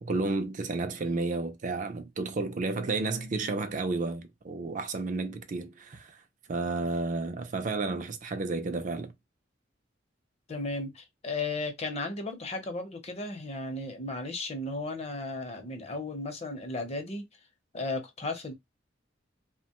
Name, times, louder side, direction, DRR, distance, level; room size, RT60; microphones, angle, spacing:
voice 1, 0.0-6.2 6.5-9.1, right 3 dB, 40° right, 0.4 m, -32 dB
voice 2, 10.5-17.2 17.7-18.5, left 2 dB, 35° left, 0.7 m, -35 dB
2.9 x 2.1 x 2.8 m
head